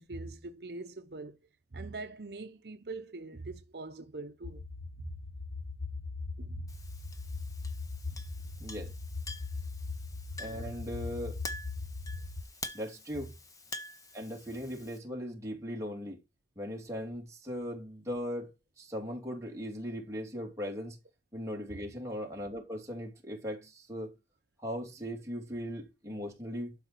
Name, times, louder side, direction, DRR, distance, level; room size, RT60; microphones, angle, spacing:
voice 1, 0.0-1.4 1.7-4.6 5.1-5.2 6.4-6.7 8.1-8.2, right 3 dB, 65° right, 0.8 m, -43 dB
sound 1, 4.4-12.4, left 3 dB, 60° left, 0.8 m, -40 dB
Chink clink, 6.7-15.0, left 2 dB, 20° left, 1.0 m, -47 dB
voice 2, 8.6-8.9 10.4-11.4 12.7-13.3 14.1-16.2 16.6-18.5 18.8-21.0 21.3-24.1 24.6-26.7, equal, 15° right, 3.0 m, -38 dB
12.0 x 5.0 x 4.5 m
head